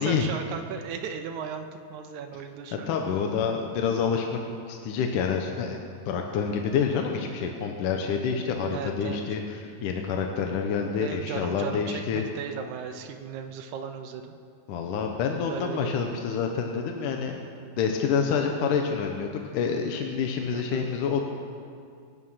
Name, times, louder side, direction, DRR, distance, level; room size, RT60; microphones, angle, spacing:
voice 1, 0.0-2.9 8.7-9.2 11.0-14.3 15.5-16.0 20.5-20.9, right 7 dB, 90° right, 5 dB, 1.6 m, -36 dB
voice 2, 2.7-4.4 4.7-5.8 6.1-12.2 14.7-17.4 17.8-21.3, left 6 dB, 70° left, 3 dB, 2.1 m, -27 dB
23.5 x 9.9 x 5.7 m, 2.3 s
omnidirectional pair, 4.4 m